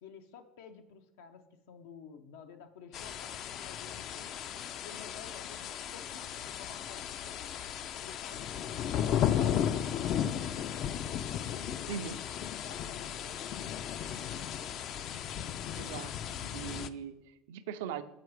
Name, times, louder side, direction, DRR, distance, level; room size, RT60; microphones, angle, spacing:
voice 1, 0.0-4.4 4.8-7.5 8.0-10.9 11.4-11.8 12.6-15.5, left 6 dB, 85° left, 6 dB, 0.6 m, -52 dB
sound 1, 2.9-16.9, left 9 dB, 50° left, 0.3 m, -35 dB
voice 2, 15.7-18.0, right 8 dB, 85° right, 10 dB, 0.5 m, -40 dB
7.5 x 4.7 x 4.7 m, 0.90 s
supercardioid pair, 120°, 0 cm